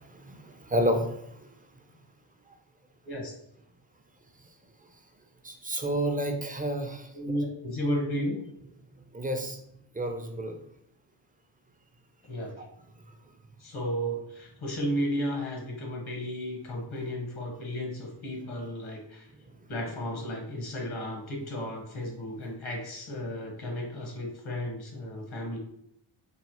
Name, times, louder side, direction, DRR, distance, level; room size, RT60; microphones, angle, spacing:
voice 1, 0.0-1.5 2.5-2.6 5.4-7.1 9.1-9.6 9.9-10.6, equal, 20° right, 5 dB, 0.3 m, -30 dB
voice 2, 7.1-8.4 12.2-12.5 13.6-19.3 19.7-25.6, equal, 75° left, 0 dB, 1.0 m, -33 dB
3.0 x 2.1 x 2.9 m, 0.74 s
cardioid pair, 45°, 49 cm